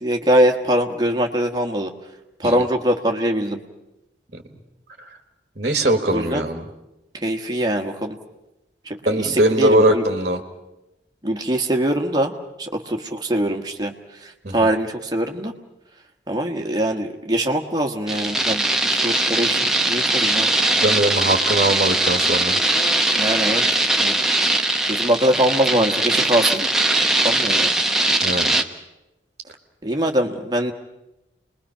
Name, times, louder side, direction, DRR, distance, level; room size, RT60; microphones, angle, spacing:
voice 1, 0.0-1.9 2.4-3.6 6.1-6.4 7.1-8.2 8.8-10.0 11.2-12.3 12.6-13.9 14.2-15.5 16.3-18.6 18.9-20.5 23.1-24.2 24.9-26.7 27.2-27.8 29.8-30.7, right 1 dB, 20° right, 3 dB, 1.5 m, -22 dB
voice 2, 5.6-6.6 9.0-10.4 14.4-14.7 20.7-22.6 28.2-28.6, right 1 dB, 40° right, 6 dB, 1.6 m, -20 dB
sound 1, 18.1-28.6, right 2 dB, 5° right, 0.8 m, -20 dB
29.0 x 21.0 x 5.7 m, 0.95 s
head